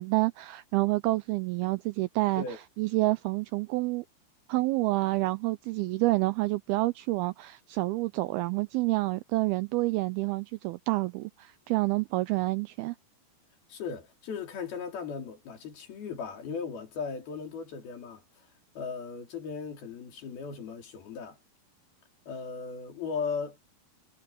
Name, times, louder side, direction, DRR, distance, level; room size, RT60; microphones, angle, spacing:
voice 1, 0.0-2.4 2.8-4.0 4.5-13.0, right 20 dB, 90° right, 2.2 m, -28 dB
voice 2, 13.7-18.2 18.8-21.4 22.3-23.6, left 5 dB, 60° left, 5.3 m, -37 dB
omnidirectional pair, 5.0 m